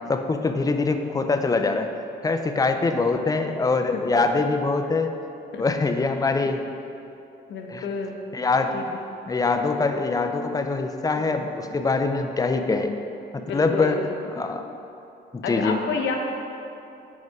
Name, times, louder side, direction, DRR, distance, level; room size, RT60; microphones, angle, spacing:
voice 1, 0.1-1.9 2.2-5.1 5.6-6.7 7.7-7.8 8.3-8.8 9.3-12.9 13.3-14.0 14.3-14.7 15.3-15.8, left 3 dB, 20° left, 6 dB, 0.4 m, -23 dB
voice 2, 7.5-8.2 8.7-9.0 13.5-14.0 15.4-16.2, left 5 dB, 70° left, 2 dB, 0.7 m, -29 dB
4.8 x 4.4 x 4.7 m, 2.8 s
cardioid pair, 90°, 20 cm